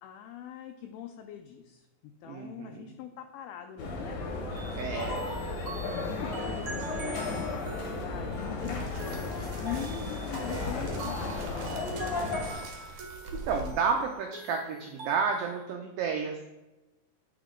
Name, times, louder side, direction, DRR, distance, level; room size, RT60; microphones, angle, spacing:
voice 1, 0.0-4.2 5.0-5.1 5.6-9.3 9.6-12.6, left 10 dB, 80° left, 4 dB, 2.2 m, -43 dB
voice 2, 2.3-2.9 4.8-5.2 13.5-16.5, right 5 dB, 80° right, 3 dB, 2.0 m, -31 dB
sound 1, 3.8-12.5, left 3 dB, 65° left, 2.1 m, -34 dB
sound 2, 5.0-15.7, right 3 dB, 50° right, 1.8 m, -44 dB
sound 3, 8.2-13.7, right 2 dB, 65° right, 2.1 m, -44 dB
8.2 x 5.1 x 3.7 m, 1.0 s
omnidirectional pair, 4.8 m